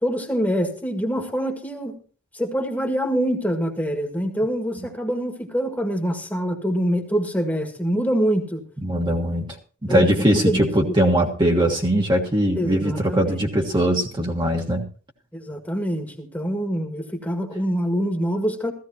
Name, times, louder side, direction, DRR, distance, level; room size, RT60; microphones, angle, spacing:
voice 1, 0.0-2.0 2.3-8.6 9.9-10.6 12.5-13.5 15.3-18.7, equal, 10° left, 4 dB, 1.8 m, -25 dB
voice 2, 8.8-9.6 9.8-14.8, right 1 dB, 25° right, 0 dB, 1.5 m, -21 dB
15.5 x 15.0 x 2.9 m, 0.40 s
head